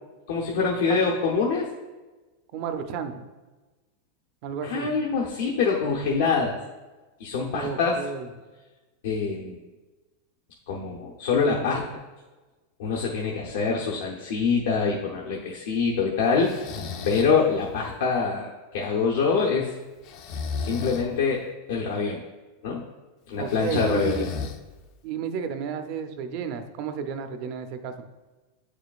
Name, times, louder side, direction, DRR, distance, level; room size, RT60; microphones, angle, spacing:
voice 1, 0.3-1.7 4.6-6.5 7.2-8.0 9.0-9.6 10.7-11.8 12.8-19.7 20.6-22.2 22.6-22.8 23.3-24.3, left 5 dB, 80° left, -2 dB, 0.8 m, -25 dB
voice 2, 2.5-3.3 4.4-4.9 7.5-8.3 23.4-24.4 25.0-27.9, right 7 dB, 45° right, 8 dB, 0.6 m, -32 dB
Breathing, 16.4-17.4 20.0-21.1 23.5-24.9, left 5 dB, 45° left, 0.5 m, -33 dB
8.6 x 4.9 x 2.4 m, 1.2 s
supercardioid pair, 150°, 0 cm